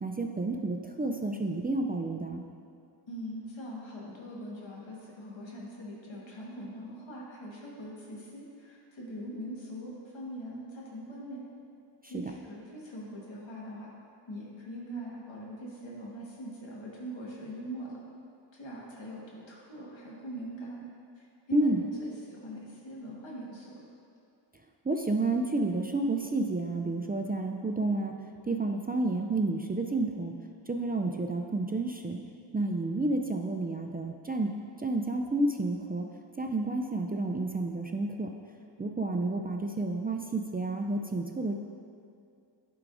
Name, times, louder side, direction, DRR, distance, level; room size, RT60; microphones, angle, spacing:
voice 1, 0.0-2.4 12.1-12.2 21.5-21.8 24.8-28.1 28.5-30.3 30.7-32.2 32.5-34.5 34.8-36.1 36.4-38.3 38.8-41.6, right 2 dB, 20° right, 3 dB, 0.4 m, -30 dB
voice 2, 3.1-11.4 12.0-13.9 14.3-18.0 18.5-20.8 21.2-23.9, equal, 85° left, -4 dB, 1.5 m, -42 dB
10.5 x 4.8 x 2.6 m, 2.4 s
wide cardioid pair, 70°, 44 cm